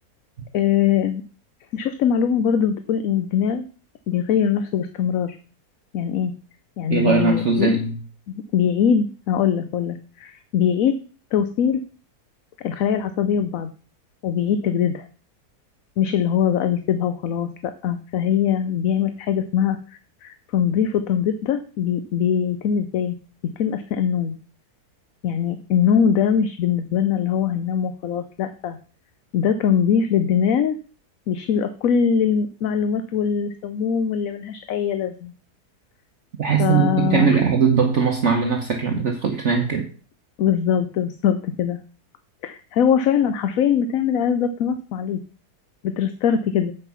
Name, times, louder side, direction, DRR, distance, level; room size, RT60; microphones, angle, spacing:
voice 1, 0.5-1.2 1.7-3.6 4.1-5.4 5.9-6.3 6.8-7.7 8.3-11.0 11.3-11.8 12.6-13.7 14.2-15.0 16.0-23.1 23.6-24.3 25.2-28.8 29.3-30.8 31.3-35.3 36.6-37.4 40.4-41.8 42.4-45.2 45.8-46.7, left 8 dB, 65° left, 10 dB, 1.1 m, -22 dB
voice 2, 6.9-8.0 36.4-39.9, right 5 dB, 50° right, 3 dB, 1.2 m, -20 dB
8.2 x 5.9 x 5.7 m, 0.39 s
omnidirectional pair, 1.7 m